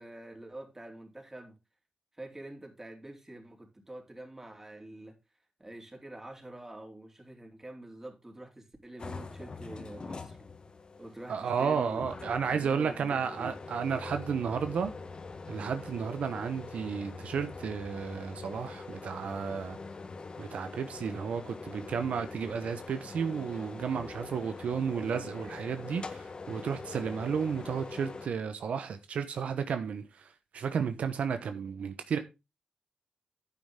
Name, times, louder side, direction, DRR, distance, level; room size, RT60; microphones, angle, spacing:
voice 1, 0.0-1.6 2.2-5.1 5.6-10.4 11.0-13.5, right 1 dB, 20° right, 3.8 m, -46 dB
sound 1, 9.0-28.3, left 4 dB, 45° left, 1.4 m, -44 dB
voice 2, 11.3-14.9 15.5-19.8 20.4-32.2, right 6 dB, 80° right, 1.1 m, -33 dB
10.0 x 8.4 x 3.7 m
cardioid pair, 80°, 2 cm